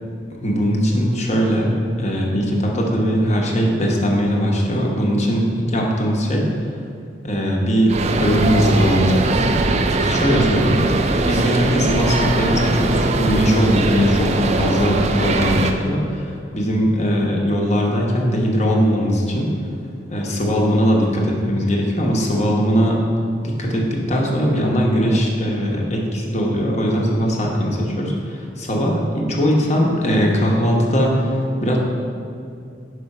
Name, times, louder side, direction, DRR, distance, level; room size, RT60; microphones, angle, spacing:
voice 1, 0.4-6.5 7.2-7.9 8.2-9.6 10.0-10.9 11.2-14.3 14.6-19.5 20.1-23.0 23.4-31.8, equal, 35° left, -2 dB, 0.9 m, -20 dB
sound 1, 7.9-15.7, right 2 dB, 35° right, 0.3 m, -20 dB
4.9 x 4.8 x 5.3 m, 2.5 s
head